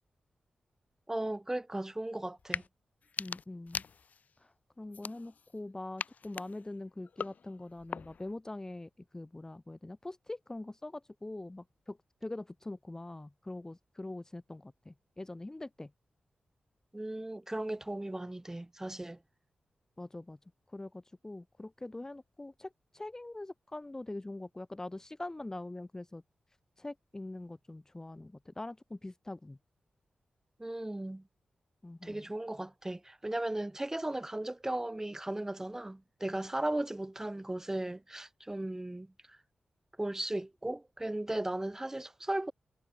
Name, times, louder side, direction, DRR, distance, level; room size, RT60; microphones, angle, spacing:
voice 1, 1.1-2.6 16.9-19.2 30.6-31.2 32.0-39.4 40.0-42.5, right 1 dB, 15° right, 2.5 m, -36 dB
sound 1, 2.4-2.7 3.0-4.3 4.9-5.6 6.0-8.3, left 6 dB, 65° left, 0.6 m, -41 dB
voice 2, 3.2-3.8 4.4-15.9 20.0-20.4 20.7-26.2 26.8-29.6 31.8-32.3, left 2 dB, 20° left, 0.8 m, -43 dB
cardioid pair, 70°, 3 cm